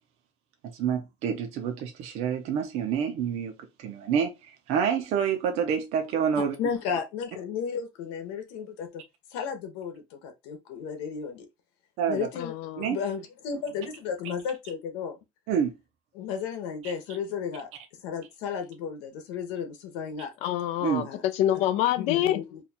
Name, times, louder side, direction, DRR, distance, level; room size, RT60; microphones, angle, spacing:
voice 1, 0.7-3.5 3.8-6.6 12.0-12.3 12.8-13.0 15.5-15.7 16.8-16.9 20.8-21.1, right 7 dB, 50° right, 0.7 m, -28 dB
voice 2, 6.4-9.0 9.3-11.5 12.1-12.5 12.8-15.2 16.1-17.7 18.0-20.3 21.0-21.2 22.0-22.6, left 7 dB, 80° left, 0.9 m, -33 dB
voice 3, 12.4-12.9 20.4-22.4, left 12 dB, 50° left, 0.4 m, -26 dB
2.8 x 2.4 x 4.1 m
cardioid pair, 160°, 14 cm